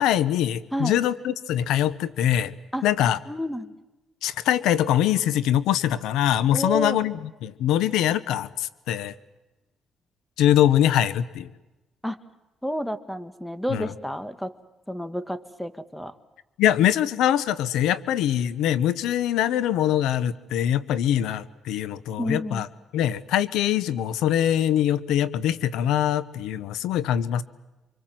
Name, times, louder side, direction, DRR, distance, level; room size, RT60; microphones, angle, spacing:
voice 1, 0.0-2.5 2.8-3.2 4.2-9.1 10.4-11.5 13.7-13.9 16.6-22.7 22.9-27.4, left 11 dB, 90° left, 17 dB, 1.0 m, -23 dB
voice 2, 0.7-1.0 2.7-2.8 3.3-3.7 6.5-7.0 12.0-12.2 12.6-14.5 14.9-16.1 22.2-22.6, equal, 5° left, 13 dB, 1.8 m, -30 dB
28.5 x 24.5 x 7.7 m, 1.1 s
cardioid pair, 90°, 0 cm